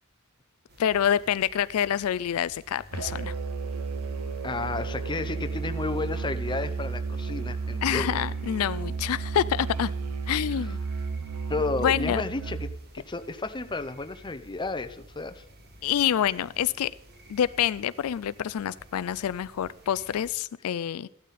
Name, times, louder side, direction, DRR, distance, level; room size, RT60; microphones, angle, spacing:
sound 1, 0.7-20.3, equal, 50° right, 2.0 m, -52 dB
voice 1, 0.8-3.3 7.8-9.9 10.3-10.8 11.8-12.2 15.8-16.9 17.3-21.1, left 9 dB, 75° left, 16 dB, 0.4 m, -27 dB
Musical instrument, 2.9-12.8, right 4 dB, 90° right, 0.9 m, -33 dB
voice 2, 4.4-8.3 11.5-12.7 12.9-15.4, left 3 dB, 20° left, 10 dB, 0.7 m, -32 dB
14.5 x 12.0 x 4.2 m, 0.71 s
head